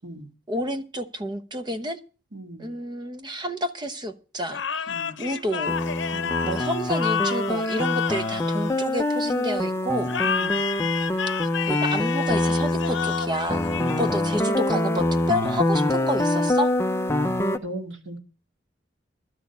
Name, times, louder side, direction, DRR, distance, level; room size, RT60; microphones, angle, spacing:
voice 1, 0.5-2.0 2.6-4.9 5.2-5.7 6.4-10.1 11.7-13.6 14.0-16.7, equal, 25° right, 1.0 m, -29 dB
voice 2, 2.3-2.7 4.9-5.2 6.1-6.5 10.2-10.6 17.6-18.2, right 1 dB, 90° right, 2.1 m, -38 dB
sound 1, 4.5-9.3 10.1-14.5, left 7 dB, 80° left, 0.8 m, -30 dB
sound 2, 5.7-17.6, left 1 dB, 15° left, 0.7 m, -25 dB
12.0 x 6.4 x 8.3 m
head